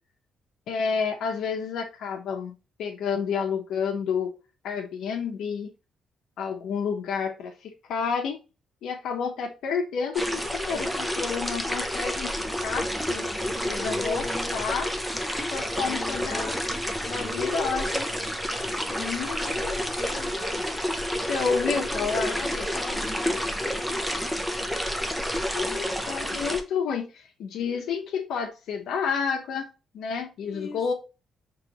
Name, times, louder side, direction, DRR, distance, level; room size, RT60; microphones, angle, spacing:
voice 1, 0.7-4.4 4.6-5.7 6.4-8.4 8.8-12.3 12.6-13.3 13.7-14.3 14.5-14.9 15.5-16.6 17.1-18.1 19.0-19.8 21.2-22.6 25.5-29.7 29.9-30.9, left 6 dB, 75° left, 0.7 m, -30 dB
sound 1, 10.1-26.6, equal, 5° right, 0.5 m, -29 dB
voice 2, 13.3-14.6 15.7-16.8 18.6-19.1 19.5-20.7 21.9-24.3 30.4-30.8, left 2 dB, 30° left, 1.1 m, -41 dB
5.8 x 3.0 x 2.8 m
cardioid pair, 155°, 0 cm